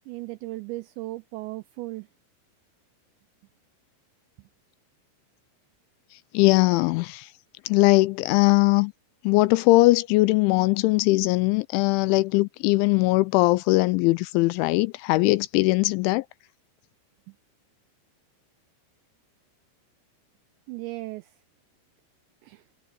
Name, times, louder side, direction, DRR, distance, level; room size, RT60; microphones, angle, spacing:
voice 1, 0.1-2.1 17.3-17.4 20.7-21.4 22.4-22.7, right 20 dB, 90° right, 2.5 m, -36 dB
voice 2, 6.3-7.3 7.7-8.9 9.2-16.2, left 21 dB, 85° left, 2.8 m, -20 dB
omnidirectional pair, 5.7 m